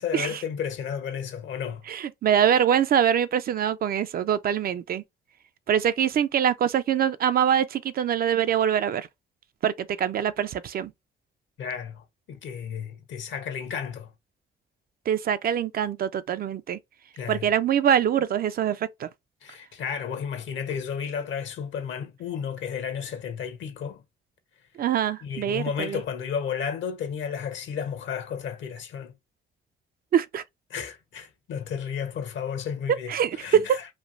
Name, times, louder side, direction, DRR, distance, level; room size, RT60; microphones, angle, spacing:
voice 1, 0.0-1.8 11.6-14.1 17.2-17.5 19.4-24.0 25.2-29.1 30.7-33.9, left 7 dB, 70° left, 0.9 m, -33 dB
voice 2, 1.9-5.0 5.7-9.1 9.6-10.9 15.1-16.8 17.3-19.1 24.8-26.0 30.1-30.4 33.1-33.8, right 9 dB, 50° right, 0.4 m, -24 dB
3.1 x 2.6 x 2.5 m
cardioid pair, 90°, 20 cm